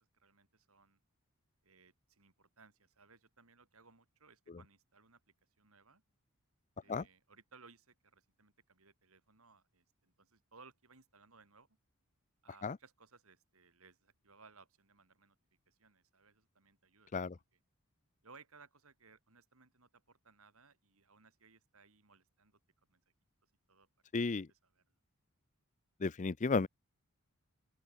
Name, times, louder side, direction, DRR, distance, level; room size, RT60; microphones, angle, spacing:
voice 1, 0.1-1.0 1.6-5.2 5.6-6.0 6.8-11.7 12.4-15.3 15.7-17.1 18.2-22.6 22.9-23.0 23.7-23.9 24.8-24.9, right 4 dB, 70° right, 3.4 m, -63 dB
voice 2, 24.1-24.5 26.0-26.7, left 4 dB, 35° left, 0.5 m, -33 dB
open air
head